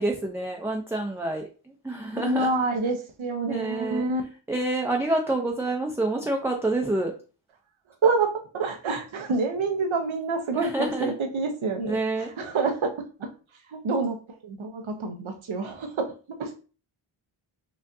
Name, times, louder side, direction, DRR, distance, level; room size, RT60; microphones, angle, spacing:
voice 1, 0.0-2.5 3.5-4.1 4.5-7.1 10.5-11.2 11.8-12.3, right 2 dB, 5° right, 1 dB, 0.5 m, -28 dB
voice 2, 2.2-4.2 8.0-10.7 11.0-12.0 12.4-12.9 13.2-13.3 13.7-14.2 14.4-16.1 16.4-16.5, right 3 dB, 70° right, 5 dB, 0.8 m, -27 dB
4.6 x 2.5 x 2.6 m, 0.36 s
cardioid pair, 50°, 50 cm